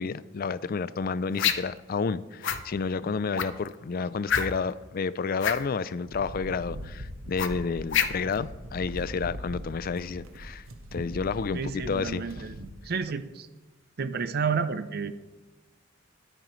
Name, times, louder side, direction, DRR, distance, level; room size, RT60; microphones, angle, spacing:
voice 1, 0.0-10.6 10.9-12.3, left 5 dB, 45° left, 17 dB, 0.4 m, -30 dB
sound 1, 1.4-1.8 2.4-2.6 3.3-3.7 4.3-4.7 5.4-5.6 7.4-8.4, left 8 dB, 60° left, 0.8 m, -26 dB
sound 2, 6.1-12.7, equal, 80° right, 1.4 m, -41 dB
voice 2, 11.5-12.5 12.8-13.5 14.0-15.1, right 5 dB, 50° right, 12 dB, 0.6 m, -30 dB
22.0 x 9.0 x 3.1 m, 1.1 s
head